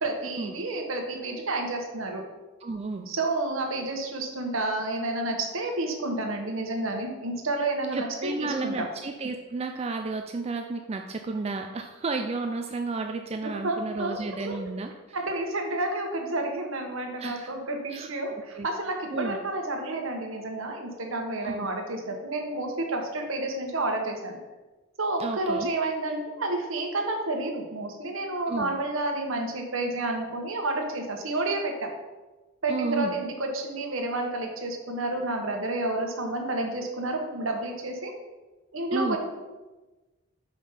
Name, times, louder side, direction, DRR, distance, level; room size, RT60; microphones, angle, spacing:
voice 1, 0.0-2.2 3.1-8.9 13.4-14.6 15.1-24.4 25.0-31.7 32.6-38.1 38.7-39.2, right 2 dB, 80° right, 3 dB, 1.2 m, -30 dB
voice 2, 2.6-3.1 7.9-14.9 17.2-17.5 17.9-18.1 18.6-18.7 19.1-19.4 21.4-21.7 25.2-25.7 28.5-28.7 32.7-33.1 38.9-39.2, right 3 dB, 30° right, 5 dB, 0.4 m, -32 dB
5.2 x 5.1 x 5.6 m, 1.2 s
head